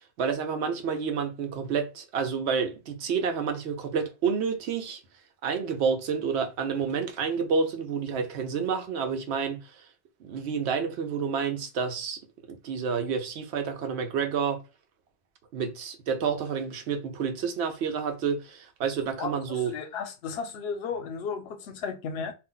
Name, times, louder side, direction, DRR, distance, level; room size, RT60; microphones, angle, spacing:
voice 1, 0.2-5.0 5.4-9.6 10.2-12.2 12.5-14.6 15.5-19.7, right 6 dB, 80° right, 0.9 m, -29 dB
voice 2, 19.2-22.3, left 5 dB, 70° left, 0.8 m, -34 dB
2.4 x 2.1 x 3.8 m
omnidirectional pair, 1.1 m